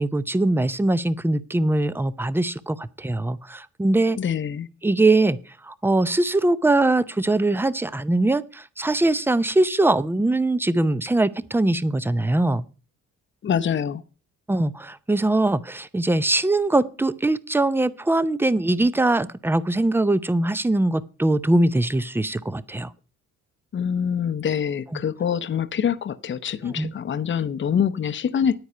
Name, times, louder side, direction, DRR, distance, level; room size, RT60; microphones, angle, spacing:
voice 1, 0.0-4.2 4.8-5.4 5.6-12.7 14.5-22.9 26.8-26.9, right 2 dB, 5° right, 0.6 m, -22 dB
voice 2, 4.2-4.7 13.4-14.0 23.7-28.6, left 8 dB, 40° left, 0.8 m, -25 dB
9.6 x 9.2 x 5.6 m
cardioid pair, 90°, 30 cm